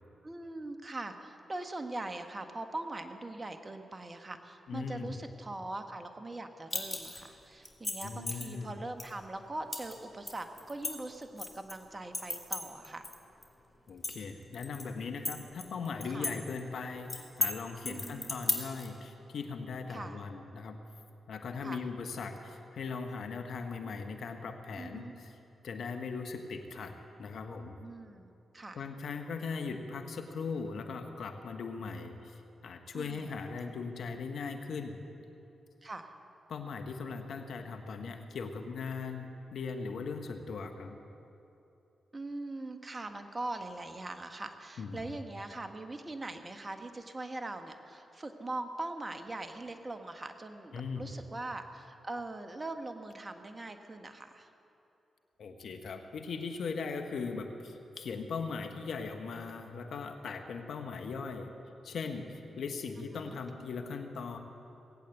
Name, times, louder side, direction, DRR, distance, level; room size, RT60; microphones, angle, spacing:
voice 1, 0.2-13.1 16.1-16.3 17.8-18.3 19.9-20.2 21.6-21.8 24.7-25.1 27.8-28.8 32.9-33.3 35.8-36.1 42.1-54.5 63.0-63.4, right 2 dB, 35° right, 7 dB, 1.5 m, -41 dB
voice 2, 4.7-5.2 8.0-8.7 13.9-20.8 21.3-25.3 25.6-26.9 27.2-27.8 28.7-35.0 36.5-41.0 44.8-45.2 50.7-51.2 55.4-61.5 61.8-64.4, left 4 dB, 70° left, 6 dB, 1.3 m, -39 dB
sound 1, 6.7-7.3 7.7-8.5 9.0-9.1 9.7-9.9 10.3-11.7 12.1-13.2 13.4-13.5 13.9-14.8 15.3-16.3 16.6-16.7 17.1-17.5 17.9-18.9, left 2 dB, 30° left, 2.9 m, -34 dB
18.5 x 8.6 x 8.1 m, 2.9 s
supercardioid pair, 40°, 0 cm